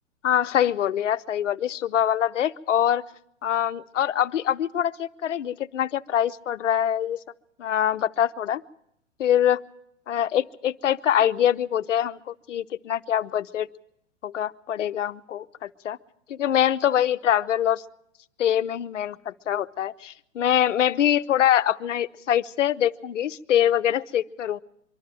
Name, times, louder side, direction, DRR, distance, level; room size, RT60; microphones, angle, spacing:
voice 1, 0.2-3.0 3.4-7.2 7.6-8.6 9.2-9.6 10.1-13.7 14.2-16.0 16.3-17.8 18.4-24.6, left 10 dB, 70° left, 12 dB, 0.8 m, -24 dB
24.0 x 12.0 x 9.0 m, 0.75 s
figure-of-eight pair, 115°, 38 cm